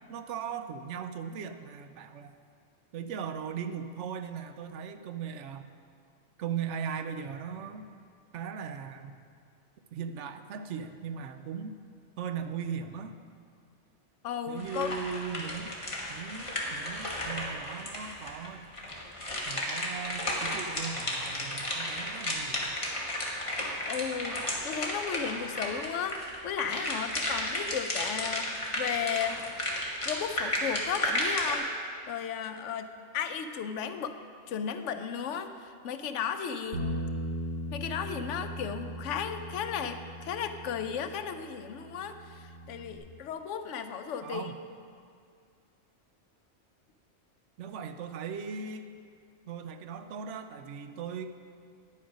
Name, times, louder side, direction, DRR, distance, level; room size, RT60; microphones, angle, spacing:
voice 1, 0.1-2.3 2.9-5.7 6.4-7.9 8.3-9.2 9.9-11.7 12.2-13.2 14.5-15.7 16.1-18.7 19.5-22.7 44.2-44.6 47.6-48.9 49.5-51.3, right 7 dB, 75° right, 8 dB, 0.9 m, -38 dB
voice 2, 14.2-14.9 23.9-28.5 28.8-29.4 30.0-34.2 34.5-36.9 37.7-44.5, left 7 dB, 80° left, 9 dB, 1.0 m, -35 dB
sound 1, 14.6-18.5 18.7-31.6, left 1 dB, 25° left, 1.4 m, -33 dB
Bass guitar, 36.7-43.0, equal, 50° right, 1.5 m, -39 dB
9.7 x 8.4 x 5.2 m, 2.3 s
omnidirectional pair, 1.2 m